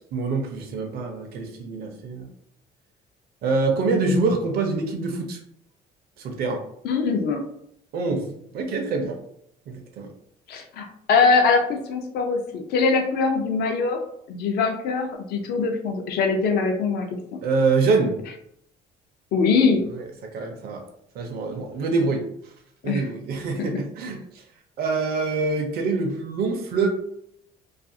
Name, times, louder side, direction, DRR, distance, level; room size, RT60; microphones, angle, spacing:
voice 1, 0.1-2.3 3.4-5.4 6.2-6.6 7.9-9.2 9.7-10.1 17.4-18.2 20.3-20.8 21.1-22.2 22.8-24.2 24.8-26.9, right 3 dB, 65° right, 3 dB, 0.5 m, -25 dB
voice 2, 6.8-7.4 10.5-14.0 14.3-17.4 19.3-19.8 22.8-23.1 23.6-23.8, left 4 dB, 70° left, 4 dB, 0.5 m, -22 dB
2.4 x 2.4 x 2.6 m, 0.73 s
cardioid pair, 110°, 17 cm